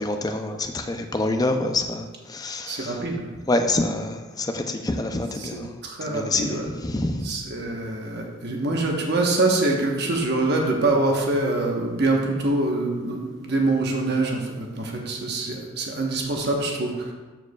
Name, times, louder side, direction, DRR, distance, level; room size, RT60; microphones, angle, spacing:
voice 1, 0.0-2.1 2.3-2.9 3.5-5.7 6.1-7.3, left 2 dB, 20° left, 6 dB, 0.4 m, -26 dB
voice 2, 2.7-3.3 5.4-5.5 5.8-6.7 7.2-16.9, right 2 dB, 55° right, 0 dB, 1.1 m, -24 dB
13.0 x 4.7 x 2.3 m, 1.3 s
head